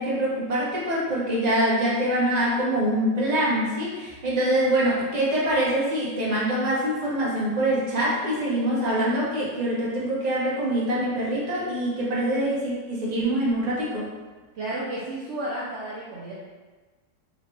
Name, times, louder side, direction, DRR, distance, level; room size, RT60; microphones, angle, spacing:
voice 1, 0.0-14.1, right 1 dB, 30° right, -7 dB, 0.8 m, -24 dB
voice 2, 14.5-16.3, right 1 dB, 70° right, -7 dB, 0.6 m, -32 dB
4.1 x 2.9 x 3.1 m, 1.3 s
omnidirectional pair, 2.0 m